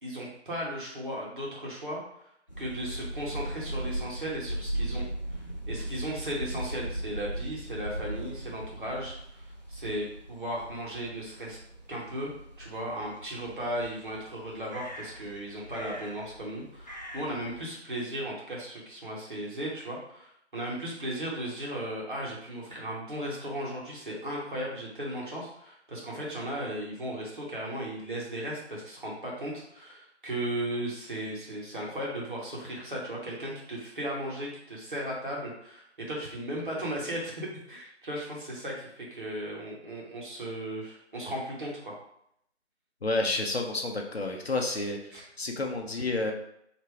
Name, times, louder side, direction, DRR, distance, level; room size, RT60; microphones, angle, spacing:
voice 1, 0.0-2.3 2.6-5.1 5.3-5.4 5.7-11.6 11.9-12.3 12.6-41.9 45.1-45.2, right 1 dB, 45° right, -4 dB, 1.3 m, -36 dB
sound 1, 2.5-17.7, right 1 dB, 40° left, 0.4 m, -38 dB
voice 2, 43.0-46.3, left 2 dB, 60° left, 2 dB, 0.8 m, -30 dB
3.3 x 2.9 x 4.5 m, 0.73 s
figure-of-eight pair, 165°, 35 cm